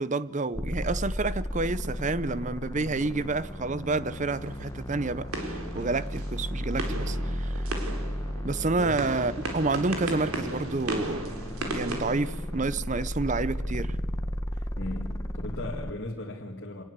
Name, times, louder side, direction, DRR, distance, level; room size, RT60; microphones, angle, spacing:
voice 1, 0.0-7.7 8.4-11.3 11.7-14.0, right 3 dB, 35° right, 0.7 m, -29 dB
sound 1, 0.5-15.9, equal, 15° left, 1.1 m, -34 dB
sound 2, 3.9-13.0, right 2 dB, 80° right, 4.0 m, -37 dB
voice 2, 14.7-16.8, left 2 dB, 50° left, 2.1 m, -37 dB
26.0 x 19.5 x 8.1 m
head